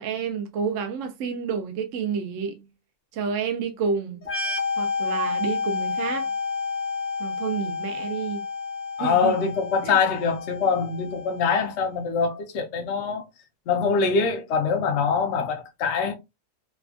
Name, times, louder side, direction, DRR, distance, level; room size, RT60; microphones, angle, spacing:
voice 1, 0.0-2.6 3.1-4.3 4.8-6.3 7.2-8.4 9.0-9.3 9.8-10.0, right 6 dB, 65° right, 0.9 m, -29 dB
sound 1, 4.2-11.7, left 4 dB, 15° left, 0.4 m, -30 dB
voice 2, 9.0-13.3 13.7-16.1, left 5 dB, 60° left, 0.8 m, -24 dB
3.3 x 2.2 x 2.4 m
omnidirectional pair, 1.5 m